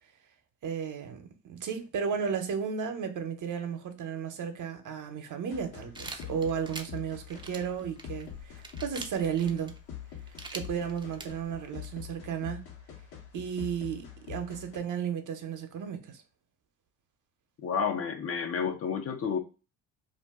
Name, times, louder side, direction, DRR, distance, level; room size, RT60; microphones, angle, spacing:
voice 1, 0.6-9.7 10.5-12.6 13.3-16.2, right 7 dB, 50° right, 0.7 m, -34 dB
sound 1, 5.5-14.8, left 9 dB, 70° left, 1.1 m, -45 dB
sound 2, 6.0-11.9, right 3 dB, 10° right, 0.5 m, -45 dB
voice 2, 17.6-19.4, left 6 dB, 35° left, 0.5 m, -30 dB
2.5 x 2.2 x 3.4 m
supercardioid pair, 75°, 39 cm